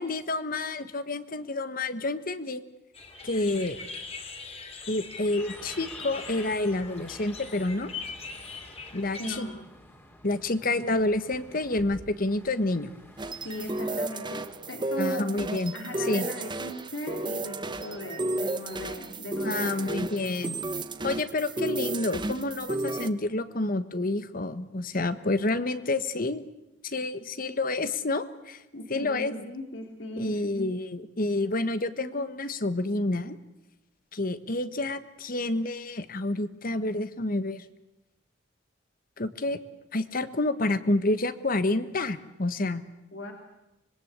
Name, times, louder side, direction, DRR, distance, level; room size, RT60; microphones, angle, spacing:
voice 1, 0.0-2.6 3.2-3.8 4.9-7.9 8.9-9.5 10.2-12.9 15.0-15.7 16.0-16.3 19.4-20.5 21.0-26.4 26.8-28.6 28.9-29.3 30.2-33.4 34.1-37.6 39.2-39.6 39.9-42.8, left 2 dB, 50° left, 12 dB, 1.3 m, -29 dB
sound 1, 2.9-9.4, left 4 dB, 35° left, 2.9 m, -41 dB
sound 2, 5.4-14.1, equal, 10° left, 2.8 m, -50 dB
voice 2, 9.2-9.5 13.4-15.2 15.7-19.8 28.7-30.5 43.1-43.3, left 1 dB, 80° left, 2 dB, 3.0 m, -38 dB
sound 3, 13.2-23.1, right 2 dB, 25° right, 1.1 m, -33 dB
25.5 x 21.0 x 8.3 m, 0.93 s
head